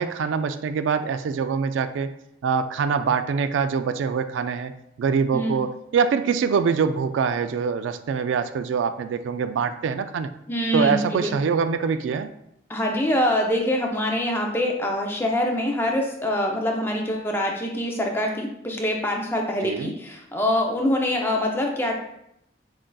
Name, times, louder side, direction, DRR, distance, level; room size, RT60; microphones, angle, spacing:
voice 1, 0.0-2.1 2.4-4.7 5.0-10.3 10.7-12.3 19.6-19.9, right 6 dB, 90° right, 10 dB, 0.3 m, -24 dB
voice 2, 10.5-11.3 12.7-22.0, left 1 dB, 10° left, 1 dB, 0.5 m, -24 dB
7.2 x 2.6 x 2.3 m, 0.78 s
head